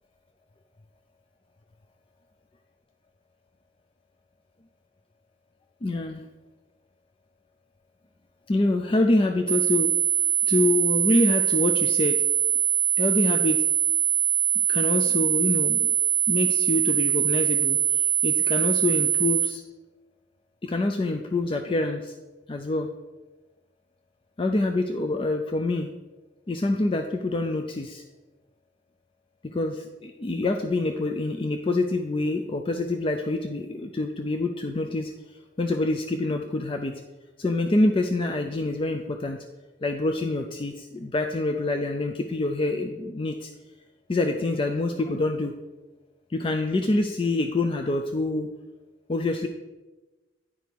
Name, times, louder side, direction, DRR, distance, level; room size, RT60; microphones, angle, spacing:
voice 1, 5.8-6.2 8.5-9.9 10.4-12.2 13.0-13.6 14.7-15.9 16.3-19.6 20.6-22.1 22.5-22.9 24.4-25.9 26.5-28.0 29.4-35.1 35.6-36.9 37.4-39.4 39.8-43.5 44.1-45.5 46.3-48.5 49.1-49.5, left 2 dB, 30° left, 4 dB, 0.4 m, -26 dB
sound 1, 9.5-19.5, right 10 dB, 10° left, 1.2 m, -23 dB
10.0 x 4.7 x 5.2 m, 1.2 s
head